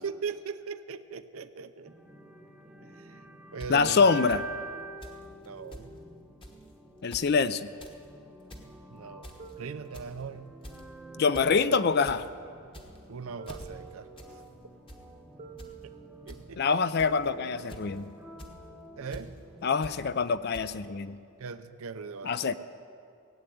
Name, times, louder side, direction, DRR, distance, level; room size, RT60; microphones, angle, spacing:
voice 1, 0.0-1.9 2.8-3.2 3.5-4.1 5.5-5.9 8.9-10.5 13.1-14.4 16.3-16.7 19.0-19.3 21.4-22.5, right 5 dB, 70° right, 11 dB, 0.6 m, -40 dB
sound 1, 1.8-19.8, right 2 dB, ahead, 0.9 m, -47 dB
sound 2, 3.6-3.7 4.3-4.4 5.0-5.2 5.4-5.5 5.7-5.9 6.4-6.6 7.0-7.3 7.6-8.0 8.3-8.7 9.2-9.5 9.9-10.2 10.6-10.9 11.3-11.5 11.8-12.2 12.7-13.1 13.4-13.7 14.2-14.3 14.6-15.0 15.6-15.7 16.3-16.4 17.0-17.2 17.7-18.0 18.4-18.5 19.1-19.2 19.8-20.0 20.5-20.6, equal, 25° left, 1.2 m, -45 dB
voice 2, 3.7-4.4 7.0-7.7 11.2-12.3 16.6-18.1 19.6-21.2 22.2-22.5, left 5 dB, 45° left, 14 dB, 0.4 m, -25 dB
sound 3, 9.4-10.6 11.4-12.6 13.4-14.6 15.4-16.6, right 8 dB, 35° right, 0.8 m, -49 dB
17.5 x 7.8 x 9.3 m, 2.4 s
head